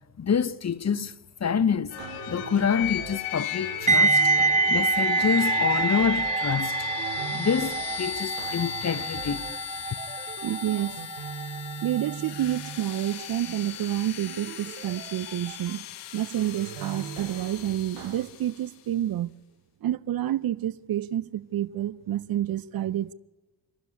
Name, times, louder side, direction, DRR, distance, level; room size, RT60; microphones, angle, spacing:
voice 1, 0.2-1.1 1.4-2.0 2.3-4.2 4.7-6.9 7.3-9.5, left 7 dB, 35° left, 1.1 m, -27 dB
sound 1, 1.9-18.6, left 11 dB, 80° left, 1.5 m, -37 dB
sound 2, 2.0-3.2 3.6-6.4 6.8-9.6 9.9-12.8 14.3-15.8 16.4-18.3, right 9 dB, 75° right, 1.3 m, -41 dB
sound 3, 3.9-12.8 13.1-13.4, right 3 dB, 15° right, 0.9 m, -26 dB
voice 2, 10.4-11.0 11.8-15.8 16.1-19.3 19.8-23.1, right 12 dB, 50° right, 0.7 m, -29 dB
25.5 x 12.5 x 9.8 m
hypercardioid pair, 45°, 47 cm